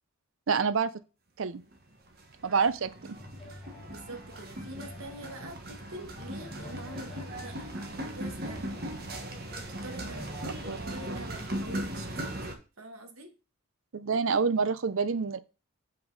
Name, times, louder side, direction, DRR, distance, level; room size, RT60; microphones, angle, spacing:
voice 1, 0.5-0.9 1.4-1.6 2.4-3.2 10.7-10.8 13.9-15.4, right 5 dB, 70° right, 0.6 m, -27 dB
sound 1, 1.5-1.8 2.0-12.5, right 1 dB, 50° right, 1.5 m, -38 dB
sound 2, 3.2-11.1, left 2 dB, ahead, 4.0 m, -49 dB
voice 2, 3.5-8.7 9.5-13.4, right 2 dB, 85° right, 1.4 m, -46 dB
8.0 x 5.3 x 4.0 m
head